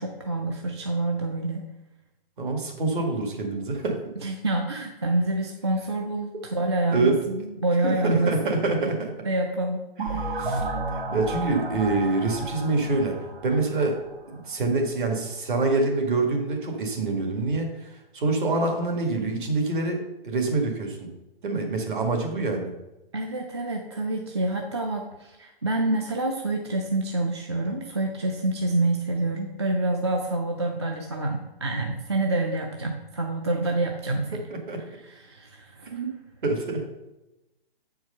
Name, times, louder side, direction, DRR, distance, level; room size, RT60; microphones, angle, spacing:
voice 1, 0.0-1.6 4.2-8.6 9.3-9.8 10.1-10.3 23.1-34.4 34.9-36.0, right 2 dB, 30° right, 2 dB, 0.4 m, -27 dB
voice 2, 2.4-4.0 6.9-7.2 7.8-9.1 10.1-10.7 11.1-13.2 13.4-14.0 14.3-21.1 21.4-22.7 34.3-34.8 35.9-36.1 36.4-36.9, right 3 dB, 55° right, 3 dB, 1.9 m, -26 dB
sound 1, 10.0-14.7, right 2 dB, 75° right, 1.5 m, -32 dB
7.7 x 4.7 x 5.5 m, 0.99 s
hypercardioid pair, 175°, 30 cm